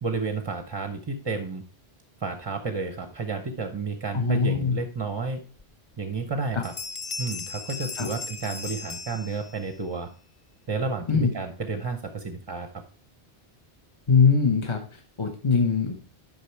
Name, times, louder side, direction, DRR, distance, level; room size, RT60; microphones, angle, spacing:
voice 1, 0.0-1.6 2.2-5.4 6.0-6.7 7.2-10.1 10.7-12.7, right 4 dB, 30° right, 7 dB, 0.6 m, -31 dB
voice 2, 4.1-4.8 6.5-6.6 8.0-8.1 11.1-11.3 14.1-16.0, left 5 dB, 30° left, 3 dB, 0.8 m, -22 dB
sound 1, 5.6-5.7 6.1-6.4 6.6-9.8, left 4 dB, 45° left, 0.4 m, -37 dB
8.4 x 5.4 x 4.4 m, 0.39 s
omnidirectional pair, 1.1 m